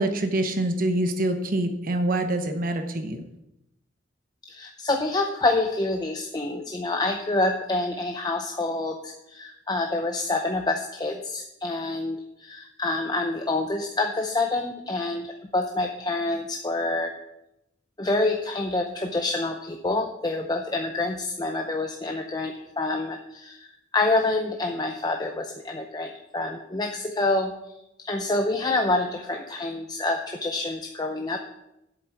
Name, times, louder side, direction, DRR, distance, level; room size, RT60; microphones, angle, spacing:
voice 1, 0.0-3.2, right 1 dB, 45° right, 7 dB, 0.9 m, -25 dB
voice 2, 4.5-17.1 18.0-27.5 28.0-31.4, left 2 dB, 20° left, 3 dB, 0.6 m, -27 dB
8.0 x 7.9 x 5.9 m, 0.87 s
head